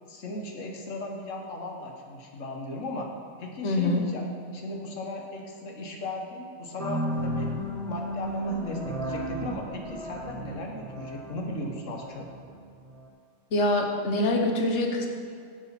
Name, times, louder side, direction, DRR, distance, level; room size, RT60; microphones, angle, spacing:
voice 1, 0.1-3.1 3.4-4.2 4.5-7.5 7.9-12.3, left 1 dB, 85° left, 1 dB, 1.4 m, -36 dB
voice 2, 3.6-4.0 13.5-15.1, left 1 dB, 70° left, 3 dB, 1.3 m, -24 dB
sound 1, 6.8-13.1, equal, 5° left, 0.8 m, -34 dB
7.3 x 6.9 x 5.7 m, 2.2 s
omnidirectional pair, 1.3 m